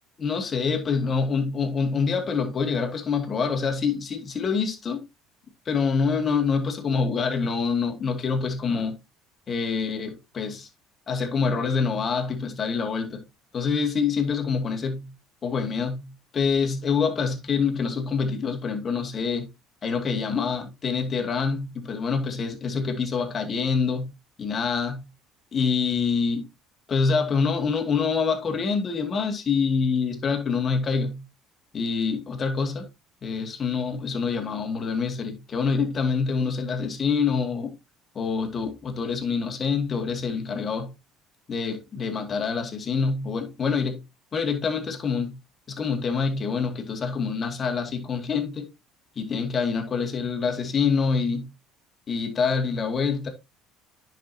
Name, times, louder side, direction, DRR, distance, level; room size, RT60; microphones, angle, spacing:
voice 1, 0.2-5.0 5.7-9.0 9.5-10.7 11.1-13.2 13.5-15.1 15.4-19.5 19.8-24.1 24.4-25.1 25.5-26.5 26.9-31.2 31.7-32.9 33.2-37.7 38.1-40.9 41.5-44.0 44.3-45.4 45.7-48.7 49.2-51.5 52.1-53.3, left 5 dB, 40° left, 2.3 m, -26 dB
10.0 x 6.0 x 2.8 m
hypercardioid pair, 65°, 0 cm